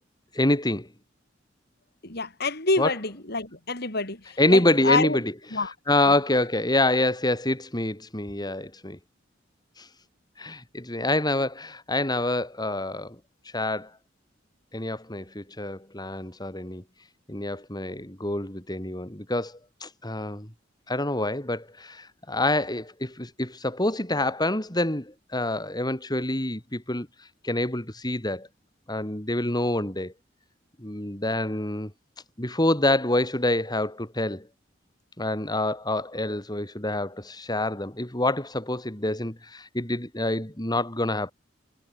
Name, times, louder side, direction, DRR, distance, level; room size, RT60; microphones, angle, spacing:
voice 1, 0.3-0.9 2.8-2.9 4.4-9.0 9.8-9.9 10.4-13.1 13.5-13.9 14.7-16.8 17.3-20.5 20.9-27.1 27.4-28.5 28.9-30.1 30.8-31.9 32.4-34.4 35.2-41.3, left 1 dB, 20° left, 5.3 m, -26 dB
voice 2, 2.0-5.2 5.5-5.7 6.1-6.2, left 3 dB, 55° left, 7.7 m, -27 dB
head